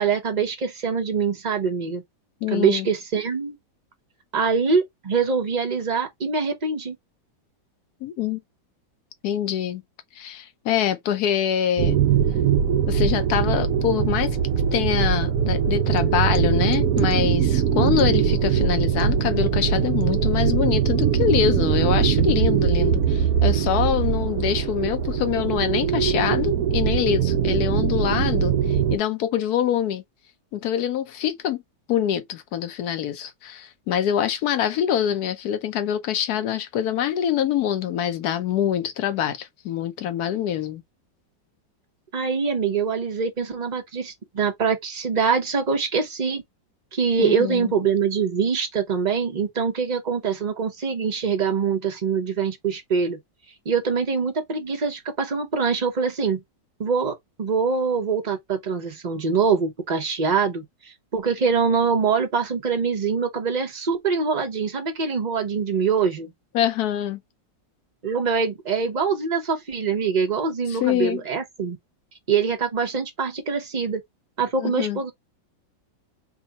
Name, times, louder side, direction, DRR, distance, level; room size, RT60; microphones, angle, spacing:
voice 1, 0.0-2.0 2.5-3.6 4.3-7.0 42.1-46.4 46.9-53.2 53.6-56.4 56.8-60.6 61.1-66.3 68.0-71.8 72.3-74.0 74.4-75.1, right 5 dB, 30° right, 0.8 m, -24 dB
voice 2, 2.4-2.9 8.0-8.4 9.2-9.8 10.2-12.0 12.9-14.4 14.7-30.0 30.5-31.6 31.9-40.8 47.2-47.7 66.5-67.2 70.7-71.2 74.6-75.0, left 10 dB, 70° left, 1.1 m, -25 dB
sound 1, 11.8-29.0, right 8 dB, 65° right, 0.9 m, -21 dB
3.5 x 2.3 x 3.9 m
omnidirectional pair, 1.9 m